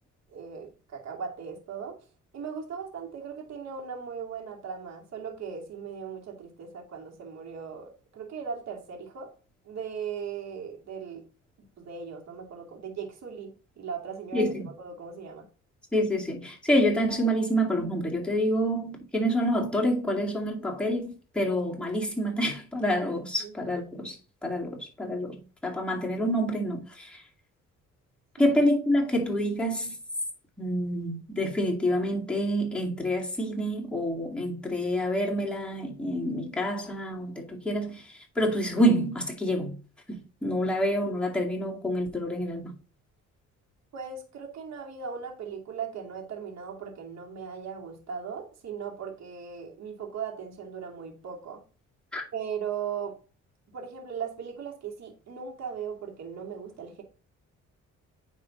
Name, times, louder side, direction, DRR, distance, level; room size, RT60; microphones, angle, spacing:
voice 1, 0.3-1.9 2.3-9.3 9.7-11.2 11.8-14.5 14.8-15.4 23.4-23.5 28.4-28.6 43.9-51.6 52.3-53.2 53.7-57.0, right 7 dB, 60° right, 2.4 m, -38 dB
voice 2, 14.3-14.7 15.9-27.2 28.4-30.0 30.6-39.8 40.1-42.7 52.1-52.2, equal, 5° left, 2.3 m, -27 dB
9.5 x 3.6 x 3.8 m
cardioid pair, 90°, 30 cm